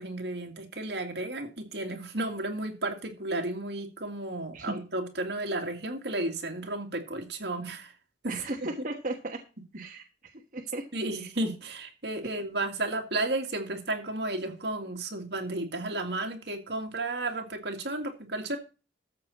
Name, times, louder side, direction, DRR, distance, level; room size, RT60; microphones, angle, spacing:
voice 1, 0.0-7.9 8.2-8.7 9.7-9.8 10.9-18.6, right 2 dB, 65° right, 2.3 m, -33 dB
voice 2, 8.3-9.4 9.7-10.8 11.2-11.3 12.2-12.3, right 2 dB, 45° right, 1.3 m, -36 dB
13.5 x 7.4 x 4.2 m
head